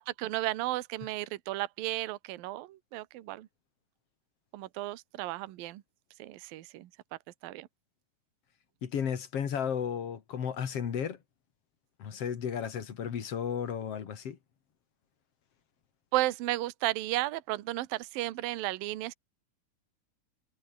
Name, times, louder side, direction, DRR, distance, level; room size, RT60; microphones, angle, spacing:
voice 1, 0.0-3.5 4.5-5.8 6.2-6.9 7.4-7.7 16.1-19.1, right 17 dB, 70° right, 2.8 m, -34 dB
voice 2, 8.8-11.2 12.0-14.4, left 8 dB, 45° left, 2.4 m, -33 dB
omnidirectional pair, 4.6 m